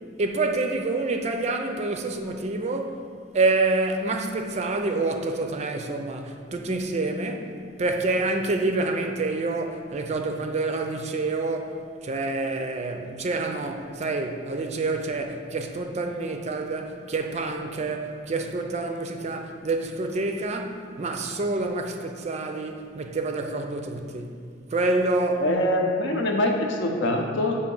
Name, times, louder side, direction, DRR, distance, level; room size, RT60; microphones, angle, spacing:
voice 1, 0.2-3.0 3.3-24.4 24.7-25.5, right 2 dB, 35° right, 0.4 m, -27 dB
voice 2, 25.4-27.6, left 1 dB, 65° left, 0.7 m, -24 dB
6.9 x 2.8 x 5.3 m
head